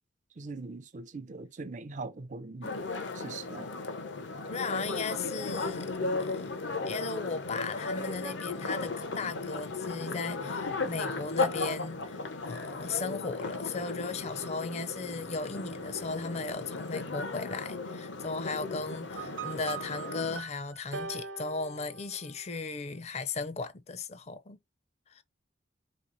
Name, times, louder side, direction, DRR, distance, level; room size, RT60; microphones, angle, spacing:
voice 1, 0.4-2.7 3.1-3.7, right 3 dB, 40° right, 0.5 m, -41 dB
sound 1, 2.6-20.4, left 3 dB, 85° left, 0.8 m, -36 dB
voice 2, 4.5-5.9 6.2-6.5 6.9-12.2 12.5-24.6 25.1-25.2, left 4 dB, 35° left, 0.5 m, -36 dB
sound 2, 19.2-22.6, right 6 dB, 90° right, 0.7 m, -41 dB
3.6 x 3.0 x 3.9 m
head